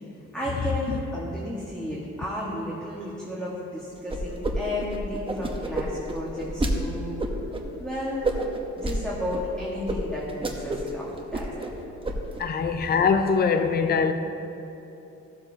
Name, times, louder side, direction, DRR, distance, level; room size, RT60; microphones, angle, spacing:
voice 1, 0.3-7.2 7.8-8.3 8.8-11.5, left 1 dB, 5° left, 1.6 m, -33 dB
sound 1, 4.1-4.5 4.8-6.7 7.2-7.6 8.2-9.0 9.3-9.4 9.9-10.0 10.3-10.9 11.2-11.7 12.0-12.4, right 2 dB, 15° right, 1.0 m, -28 dB
voice 2, 12.4-14.1, left 5 dB, 30° left, 0.5 m, -22 dB
15.0 x 7.5 x 2.8 m
cardioid pair, 90°, 30 cm